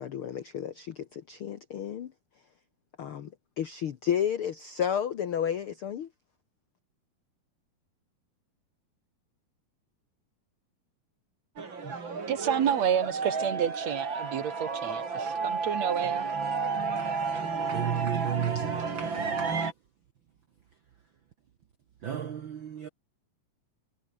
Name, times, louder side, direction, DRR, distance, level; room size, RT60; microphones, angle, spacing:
voice 1, 0.0-2.1 3.0-6.1, left 9 dB, 75° left, 1.2 m, -32 dB
sound 1, 11.6-19.7, right 4 dB, 35° right, 3.7 m, -32 dB
voice 2, 12.3-16.3, right 9 dB, 55° right, 2.4 m, -29 dB
voice 3, 17.7-19.4 22.0-22.9, right 9 dB, 80° right, 1.1 m, -33 dB
omnidirectional pair, 4.1 m